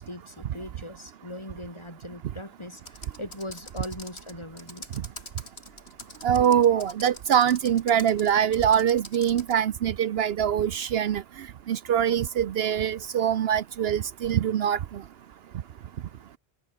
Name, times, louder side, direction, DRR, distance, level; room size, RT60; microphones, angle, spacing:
voice 1, 0.0-2.8 3.2-4.8 6.7-6.9, left 1 dB, 25° left, 4.1 m, -40 dB
Computer keyboard, 2.8-9.6, left 1 dB, 80° left, 7.6 m, -45 dB
voice 2, 6.2-11.2 11.7-14.8, right 9 dB, 70° right, 0.9 m, -23 dB
omnidirectional pair, 1.1 m